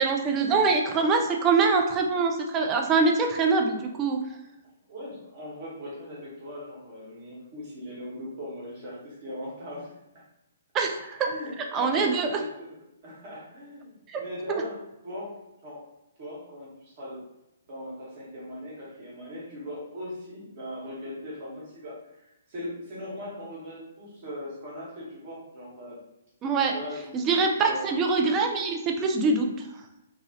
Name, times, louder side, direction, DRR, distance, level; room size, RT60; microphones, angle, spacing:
voice 1, 0.0-4.2 10.7-11.3 11.7-12.4 14.1-14.2 26.4-26.7 27.1-29.5, right 4 dB, 20° right, 3 dB, 0.4 m, -24 dB
voice 2, 4.9-9.9 11.3-14.8 15.0-15.3 15.6-15.8 16.2-17.2 17.7-26.0 26.7-27.8, left 1 dB, 40° right, -5 dB, 1.2 m, -39 dB
2.9 x 2.3 x 2.8 m, 0.89 s
figure-of-eight pair, 125°, 0 cm